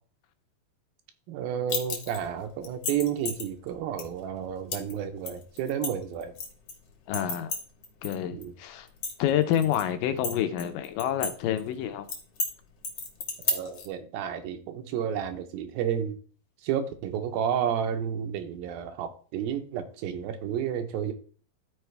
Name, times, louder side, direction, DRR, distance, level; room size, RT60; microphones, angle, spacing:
voice 1, 1.3-6.3 8.3-8.5 13.5-16.2 16.6-21.1, right 9 dB, 90° right, 2.8 m, -31 dB
sound 1, 1.7-2.2 2.6-3.5 4.0-4.1 4.7-4.9 5.3-6.7 7.1-8.1 8.4-8.5 8.9-9.8 10.2-11.3 11.6-11.7 12.1-12.5 12.8-13.9, left 3 dB, 55° left, 1.9 m, -32 dB
voice 2, 7.1-7.6 8.0-8.9 9.2-12.1, left 10 dB, 80° left, 2.3 m, -28 dB
13.0 x 4.6 x 3.3 m
omnidirectional pair, 4.1 m